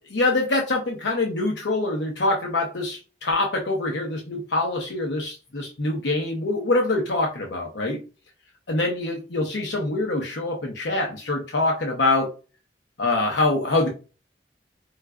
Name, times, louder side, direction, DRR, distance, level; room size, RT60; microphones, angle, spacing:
voice 1, 0.1-8.0 8.7-12.3 13.0-13.9, left 2 dB, 85° left, 0.7 m, -24 dB
4.4 x 2.4 x 2.3 m
head